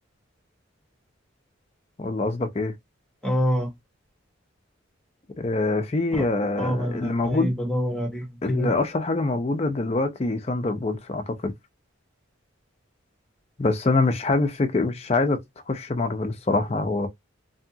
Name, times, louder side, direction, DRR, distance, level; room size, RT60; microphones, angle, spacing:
voice 1, 2.0-2.8 5.4-7.5 8.4-11.5 13.6-17.1, left 3 dB, 30° left, 0.5 m, -25 dB
voice 2, 3.2-3.7 6.2-6.3 6.6-8.7, equal, 5° left, 1.1 m, -26 dB
2.7 x 2.4 x 2.7 m
head